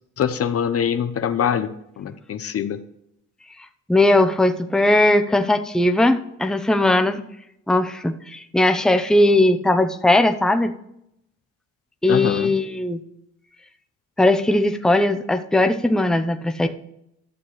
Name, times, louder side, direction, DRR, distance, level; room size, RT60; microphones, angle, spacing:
voice 1, 0.2-2.8 12.1-12.5, left 8 dB, 50° left, 11 dB, 0.7 m, -24 dB
voice 2, 3.9-7.2 7.7-10.7 12.0-13.0 14.2-16.7, left 1 dB, ahead, 6 dB, 0.7 m, -18 dB
12.0 x 6.9 x 3.1 m, 0.78 s
cardioid pair, 90°, 30 cm